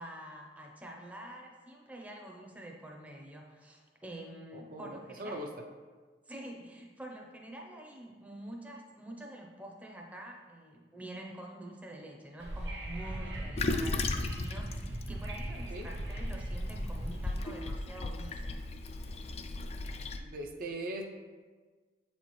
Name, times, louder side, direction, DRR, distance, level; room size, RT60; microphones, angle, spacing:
voice 1, 0.0-5.4 6.3-18.6, right 1 dB, 10° right, 0 dB, 0.6 m, -47 dB
voice 2, 4.5-5.5 15.7-15.9 20.2-21.0, right 1 dB, 50° right, 2 dB, 0.5 m, -40 dB
Wind / Subway metro underground, 12.4-17.4, right 1 dB, 80° right, 0.9 m, -38 dB
Toilet flush, 13.6-20.2, left 3 dB, 35° left, 0.3 m, -37 dB
7.6 x 4.3 x 3.1 m, 1.4 s
head